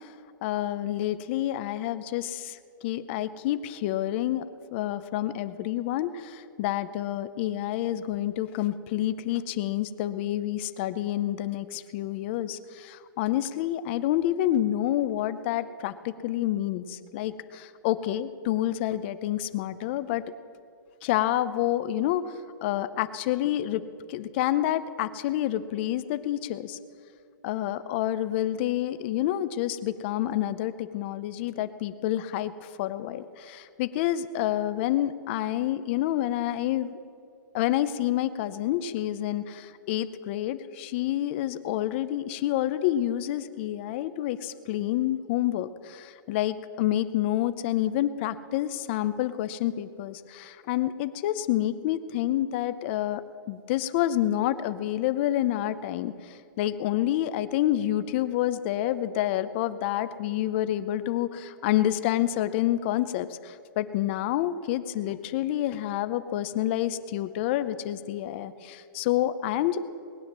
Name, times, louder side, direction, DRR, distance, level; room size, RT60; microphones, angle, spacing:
voice 1, 0.4-2.6 2.8-4.4 4.7-20.2 21.0-22.2 22.6-23.8 24.1-26.8 27.4-32.5 32.8-37.0 37.5-53.2 53.5-56.1 56.6-69.8, left 13 dB, 35° left, 13 dB, 0.6 m, -28 dB
19.5 x 9.4 x 7.3 m, 2.4 s
hypercardioid pair, 165°, 11 cm